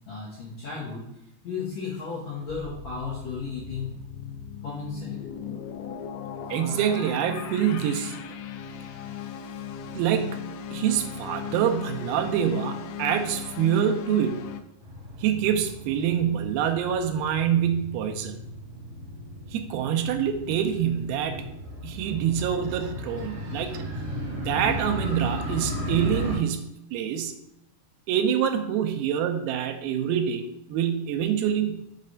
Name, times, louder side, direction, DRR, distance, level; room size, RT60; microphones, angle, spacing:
voice 1, 0.1-1.1 1.4-3.9 4.6-5.2 23.2-23.3, left 4 dB, 60° left, -6 dB, 2.0 m, -34 dB
sound 1, 2.5-14.6, left 8 dB, 85° left, 2.4 m, -37 dB
voice 2, 6.5-8.2 9.9-14.5 15.2-18.4 19.5-21.5 21.8-23.9 24.3-27.3 28.1-31.8, right 9 dB, 85° right, 6 dB, 2.5 m, -26 dB
Motorcycle, 14.8-26.4, left 1 dB, 65° right, 3.2 m, -35 dB
6.7 x 3.2 x 5.1 m, 0.83 s
omnidirectional pair, 4.4 m